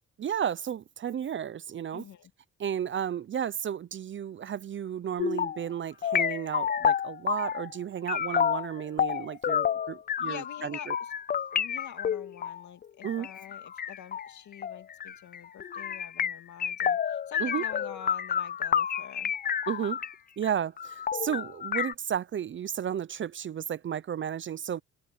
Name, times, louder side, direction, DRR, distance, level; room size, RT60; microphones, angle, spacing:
voice 1, 0.2-2.0 2.6-10.9 13.0-13.3 17.4-17.6 19.7-20.0 20.4-24.8, right 9 dB, 40° right, 0.6 m, -33 dB
voice 2, 1.9-2.3 10.2-11.1 11.5-19.3, left 10 dB, 70° left, 2.5 m, -46 dB
sound 1, 5.2-5.7 6.0-7.8 8.1-20.1 20.4-20.5 20.8-21.9, left 8 dB, 30° left, 0.4 m, -30 dB
cardioid pair, 90°, 30 cm